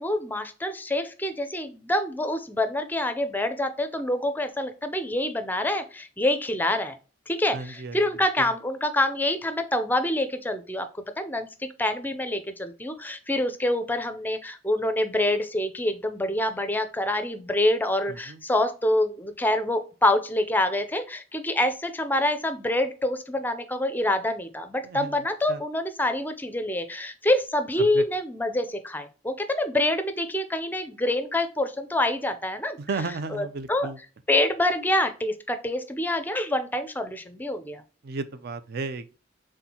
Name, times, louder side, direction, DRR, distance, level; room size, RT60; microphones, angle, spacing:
voice 1, 0.0-7.0 7.3-10.9 11.2-32.8 33.3-33.9 34.3-37.8, left 1 dB, 10° left, 0.4 m, -26 dB
voice 2, 7.5-8.0 18.1-18.4 24.8-25.2 25.5-25.6 27.8-28.0 32.8-34.0 38.0-39.1, right 3 dB, 55° right, 0.4 m, -34 dB
4.4 x 3.6 x 2.8 m
head